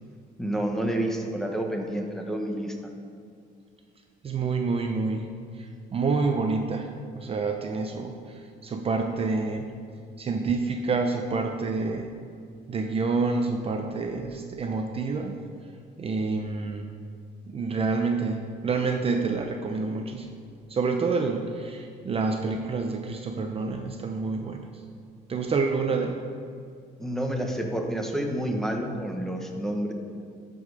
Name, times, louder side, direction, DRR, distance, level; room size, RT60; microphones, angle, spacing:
voice 1, 0.4-2.7 27.0-29.9, right 1 dB, ahead, 2 dB, 1.1 m, -29 dB
voice 2, 4.2-5.3 5.6-6.9 7.1-9.7 10.2-12.1 12.7-15.4 16.0-16.9 17.5-20.3 20.7-24.6 25.3-26.2, right 4 dB, 35° right, 4 dB, 0.7 m, -28 dB
12.5 x 5.4 x 4.9 m, 2.3 s
cardioid pair, 110°, 17 cm